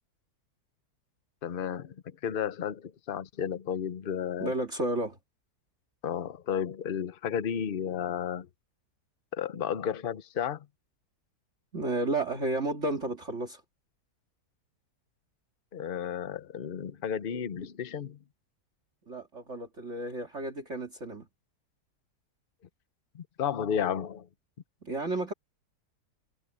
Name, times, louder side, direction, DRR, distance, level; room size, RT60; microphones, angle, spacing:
voice 1, 1.4-1.9 2.2-4.5 6.0-8.5 9.3-10.7 15.7-18.2 23.1-24.3, left 8 dB, 45° left, 0.9 m, -32 dB
voice 2, 4.4-5.2 11.7-13.6 19.1-21.3 24.8-25.3, right 2 dB, 45° right, 2.7 m, -32 dB
omnidirectional pair, 1.7 m